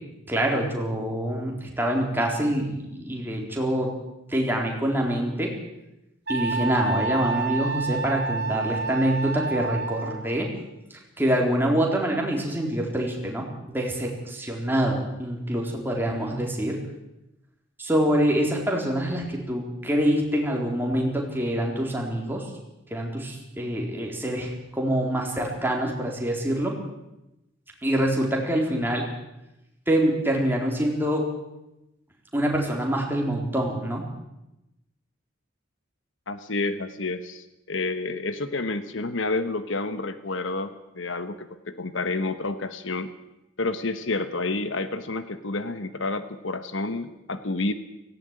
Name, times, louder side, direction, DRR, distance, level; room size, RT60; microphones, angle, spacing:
voice 1, 0.3-3.9 4.3-5.5 6.3-10.5 11.2-16.8 17.8-22.4 22.9-26.8 27.8-29.1 29.9-31.3 32.3-34.0, right 1 dB, 10° right, 0 dB, 4.0 m, -25 dB
Wind instrument woodwind instrument, 6.3-10.4, right 3 dB, 55° right, 1.7 m, -29 dB
voice 2, 36.3-43.1 43.6-47.7, left 3 dB, 70° left, 11 dB, 1.2 m, -29 dB
17.5 x 17.0 x 9.1 m, 0.92 s
head